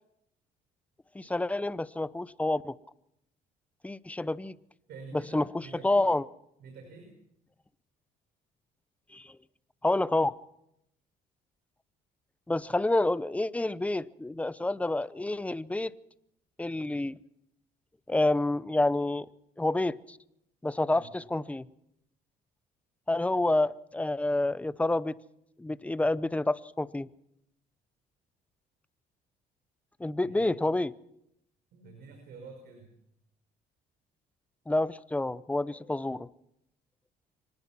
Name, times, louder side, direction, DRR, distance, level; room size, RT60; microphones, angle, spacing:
voice 1, 1.1-2.7 3.8-4.6 5.3-6.2 9.1-9.3 9.8-10.3 12.5-15.9 16.6-17.2 18.1-19.3 19.6-20.2 20.6-21.7 23.1-25.1 25.6-27.1 30.0-30.9 34.7-36.3, left 2 dB, 10° left, 16 dB, 0.7 m, -28 dB
voice 2, 4.9-6.1 6.6-7.1 20.9-21.1 30.1-30.5 31.7-32.9, right 4 dB, 65° right, 4 dB, 5.7 m, -48 dB
25.0 x 19.5 x 6.1 m, 0.79 s
cardioid pair, 110°, 17 cm